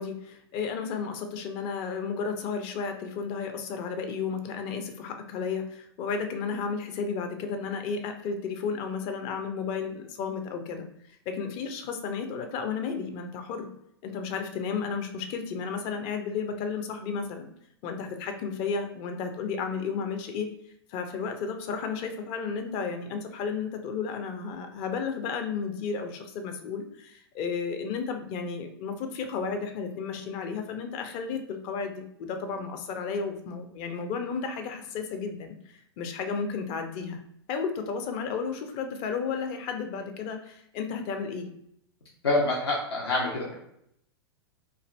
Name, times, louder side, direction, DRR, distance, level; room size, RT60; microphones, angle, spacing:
voice 1, 0.0-10.8 11.3-13.7 14.0-17.5 17.8-20.5 20.9-37.2 37.5-41.5, left 5 dB, 40° left, 6 dB, 0.5 m, -33 dB
voice 2, 42.2-43.5, left 2 dB, 75° left, -4 dB, 0.8 m, -26 dB
2.5 x 2.5 x 3.1 m, 0.73 s
figure-of-eight pair, 100°, 14 cm